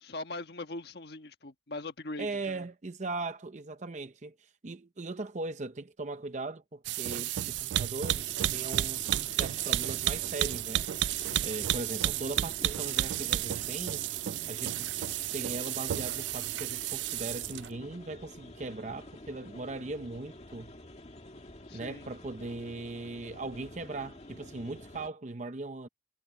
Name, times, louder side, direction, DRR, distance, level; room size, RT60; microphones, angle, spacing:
voice 1, 0.0-2.6 21.7-22.1, left 2 dB, 60° left, 1.4 m, -41 dB
voice 2, 2.2-9.0 9.3-10.9 11.4-14.0 14.5-20.7 21.7-25.9, right 2 dB, 40° right, 0.7 m, -39 dB
sound 1, 6.8-17.7, right 13 dB, 70° right, 0.3 m, -32 dB
sound 2, 8.0-25.1, left 1 dB, 35° left, 2.1 m, -49 dB
head